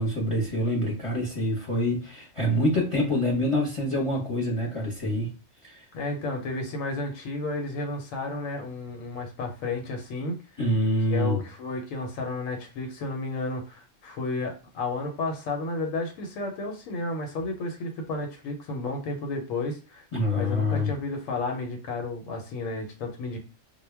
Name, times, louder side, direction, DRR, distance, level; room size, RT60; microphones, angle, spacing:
voice 1, 0.0-5.3 5.6-5.8 10.6-11.4 20.1-20.9, left 1 dB, 30° left, -4 dB, 0.7 m, -26 dB
voice 2, 5.9-10.4 11.1-20.0 20.3-23.4, left 2 dB, 85° left, 3 dB, 1.0 m, -32 dB
2.2 x 2.1 x 3.2 m, 0.33 s
omnidirectional pair, 1.3 m